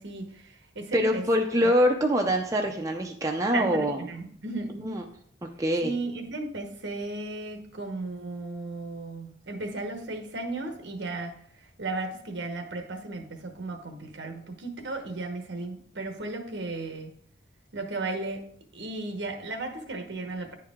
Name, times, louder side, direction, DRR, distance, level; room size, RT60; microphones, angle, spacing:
voice 1, 0.0-1.2 1.6-1.7 3.5-4.7 5.8-11.3 11.6-17.1 17.7-18.4 18.7-20.5, right 2 dB, 60° right, 5 dB, 1.1 m, -35 dB
voice 2, 0.9-4.0 4.8-5.0 5.6-5.9, equal, 15° right, 2 dB, 0.5 m, -24 dB
9.7 x 4.7 x 3.6 m, 0.63 s
head